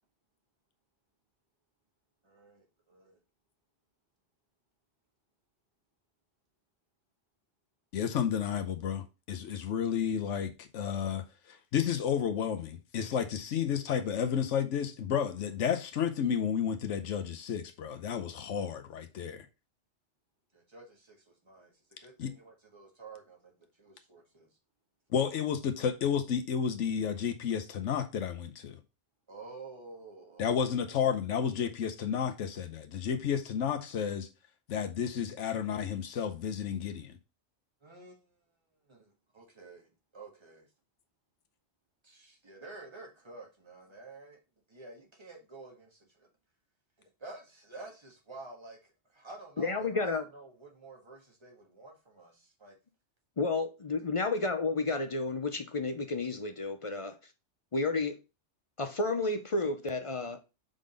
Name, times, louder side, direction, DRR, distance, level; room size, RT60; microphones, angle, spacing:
voice 1, 2.2-3.2 20.5-24.5 29.3-31.0 37.8-38.3 38.9-40.7 42.0-44.4 44.7-46.3 47.0-52.8, right 3 dB, 25° right, 1.6 m, -50 dB
voice 2, 7.9-19.5 22.2-22.3 25.1-28.8 30.4-34.3 34.7-37.2, left 8 dB, 90° left, 1.1 m, -31 dB
voice 3, 49.6-50.2 53.4-57.2 57.7-58.2 58.8-60.4, left 3 dB, 40° left, 0.5 m, -31 dB
5.2 x 3.9 x 5.1 m
omnidirectional pair, 1.2 m